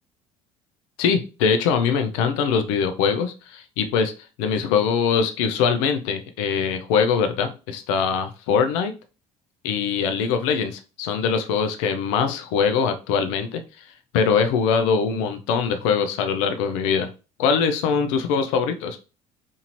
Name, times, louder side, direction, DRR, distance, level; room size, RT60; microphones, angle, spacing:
voice 1, 1.0-4.1 4.4-8.9 9.6-17.1 17.4-19.0, left 6 dB, 85° left, 8 dB, 0.4 m, -22 dB
2.7 x 2.6 x 2.9 m, 0.33 s
supercardioid pair, 75°, 16 cm